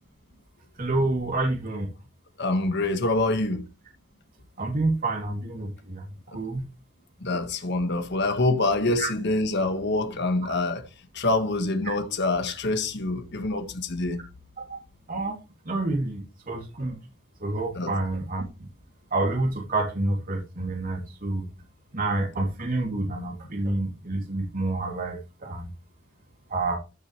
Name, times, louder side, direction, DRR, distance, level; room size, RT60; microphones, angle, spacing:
voice 1, 0.8-1.9 4.6-6.0 6.3-6.6 9.0-9.1 10.4-10.6 15.1-15.3 15.6-17.0 17.4-18.4 19.1-21.4 21.9-25.7 26.5-26.8, right 2 dB, 45° right, 3.0 m, -28 dB
voice 2, 2.4-3.6 6.3-6.4 7.2-10.9 11.1-14.2 17.7-17.9, left 2 dB, 60° left, 1.6 m, -26 dB
15.0 x 7.6 x 3.3 m
head